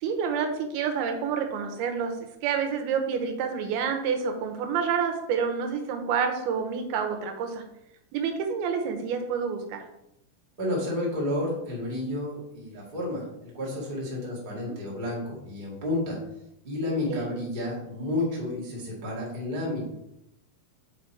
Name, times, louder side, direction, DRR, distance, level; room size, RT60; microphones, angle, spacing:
voice 1, 0.0-7.6 8.1-9.8 14.6-14.8 17.1-17.3, right 6 dB, 90° right, 5 dB, 2.8 m, -28 dB
voice 2, 10.6-16.2 16.6-19.8, left 1 dB, 25° right, -5 dB, 1.1 m, -31 dB
5.7 x 4.8 x 4.4 m, 0.83 s
omnidirectional pair, 4.4 m